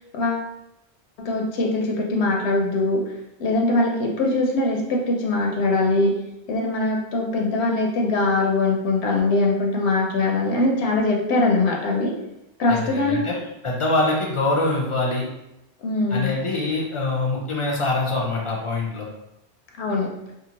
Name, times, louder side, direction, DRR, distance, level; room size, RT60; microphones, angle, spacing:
voice 1, 0.1-0.5 1.2-3.0 3.4-6.2 6.5-12.1 12.6-13.2 15.8-16.4 19.8-20.1, left 2 dB, 85° left, 0 dB, 0.8 m, -22 dB
voice 2, 12.7-13.4 13.6-15.2 16.1-19.1, left 2 dB, 50° left, -1 dB, 0.3 m, -24 dB
2.7 x 2.3 x 2.8 m, 0.88 s
omnidirectional pair, 1.1 m